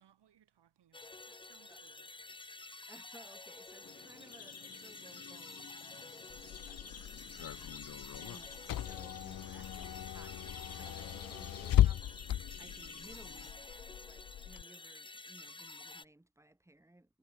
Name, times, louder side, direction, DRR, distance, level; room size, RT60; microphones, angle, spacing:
voice 1, 0.0-2.7, right 10 dB, 80° right, 5.3 m, -68 dB
sound 1, 0.9-16.1, left 2 dB, 10° left, 1.0 m, -51 dB
voice 2, 2.9-5.7 6.1-17.2, right 1 dB, 5° right, 4.5 m, -60 dB
sound 2, 3.8-13.5, left 7 dB, 40° left, 1.0 m, -53 dB
Car / Engine, 6.3-14.6, left 12 dB, 55° left, 0.6 m, -36 dB
wide cardioid pair, 155°, 40 cm